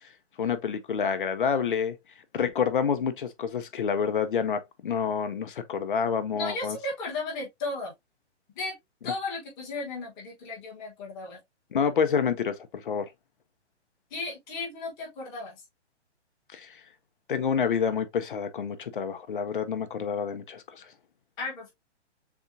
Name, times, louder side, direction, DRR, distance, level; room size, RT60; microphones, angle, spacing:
voice 1, 0.4-2.0 2.3-6.8 11.7-12.6 12.8-13.1 16.5-16.7 17.3-20.8, left 6 dB, 45° left, 0.7 m, -28 dB
voice 2, 6.3-7.9 8.5-8.7 9.0-11.4 14.1-15.6 21.4-21.7, left 3 dB, 10° left, 1.2 m, -35 dB
7.1 x 2.4 x 2.6 m
hypercardioid pair, 175°, 36 cm